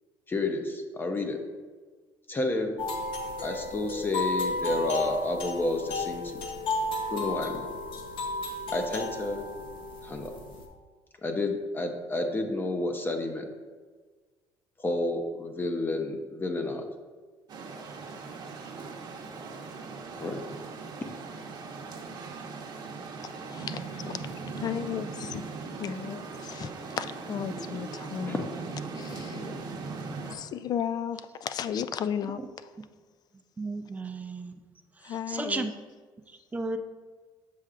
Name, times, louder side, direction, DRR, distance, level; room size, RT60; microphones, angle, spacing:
voice 1, 0.3-1.4 2.3-2.8 3.4-6.4 7.1-7.7 8.7-9.4 10.0-10.3 11.2-13.5 14.8-16.8 20.2-20.4 28.3-28.4 29.1-29.6, left 2 dB, 20° left, 5 dB, 0.8 m, -30 dB
sound 1, 2.8-10.6, left 2 dB, 65° left, 0.9 m, -33 dB
sound 2, 17.5-30.4, right 4 dB, 50° right, 0.9 m, -39 dB
voice 2, 23.4-25.4 25.8-28.5 29.0-29.4 30.3-32.7 35.0-35.7, left 8 dB, 45° left, 13 dB, 0.3 m, -34 dB
voice 3, 33.6-34.5 35.0-35.7 36.5-36.8, right 3 dB, 15° right, 7 dB, 0.5 m, -33 dB
7.5 x 5.5 x 2.5 m, 1.4 s
cardioid pair, 100°, 9 cm